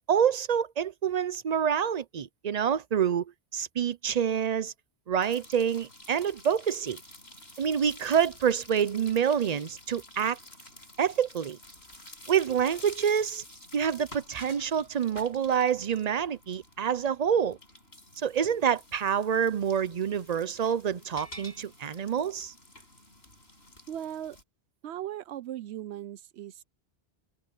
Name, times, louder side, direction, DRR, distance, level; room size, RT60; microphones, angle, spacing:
voice 1, 0.0-3.3 3.5-4.7 5.1-7.0 7.6-10.4 11.0-11.6 12.3-13.4 13.7-17.6 18.2-22.5, right 8 dB, 45° right, 0.6 m, -27 dB
sound 1, 5.2-24.4, left 1 dB, 70° left, 7.4 m, -50 dB
voice 2, 23.9-24.4 24.8-26.6, right 11 dB, 85° right, 0.9 m, -38 dB
omnidirectional pair, 1.1 m